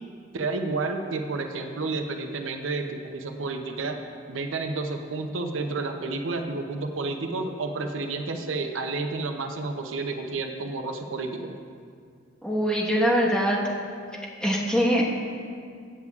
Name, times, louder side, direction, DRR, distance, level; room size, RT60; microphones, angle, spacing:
voice 1, 0.3-4.0 4.3-11.6, right 3 dB, 80° right, 5 dB, 0.6 m, -30 dB
voice 2, 12.4-13.6 14.4-15.0, equal, 5° left, -4 dB, 1.3 m, -22 dB
15.0 x 8.2 x 2.4 m, 2.2 s
head